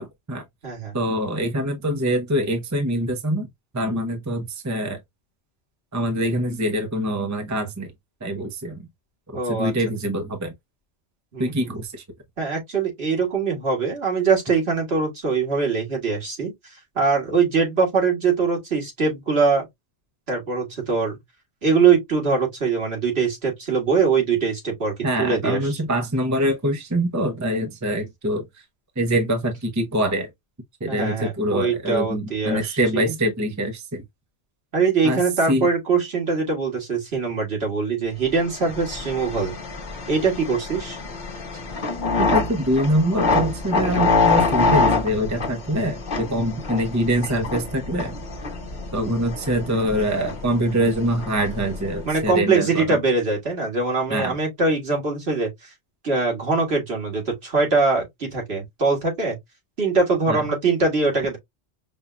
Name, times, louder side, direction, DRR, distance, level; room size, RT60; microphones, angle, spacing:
voice 1, 0.0-0.4 0.9-3.5 3.7-5.0 5.9-7.9 8.2-8.9 9.3-10.5 11.4-12.0 25.0-28.5 29.0-30.3 30.8-34.0 35.0-35.2 35.5-35.7 42.2-48.2 48.9-53.0 54.1-54.3 60.3-60.4, equal, 15° right, 0.8 m, -24 dB
voice 2, 0.6-0.9 9.3-9.7 11.3-11.7 12.4-16.5 17.0-19.7 20.3-21.2 21.6-25.6 30.9-33.1 34.7-39.5 40.1-41.0 52.1-55.7 56.0-59.4 59.8-61.4, right 4 dB, 65° right, 2.2 m, -22 dB
sound 1, 38.4-52.2, left 3 dB, 45° left, 1.0 m, -26 dB
5.4 x 2.7 x 2.2 m
omnidirectional pair, 1.1 m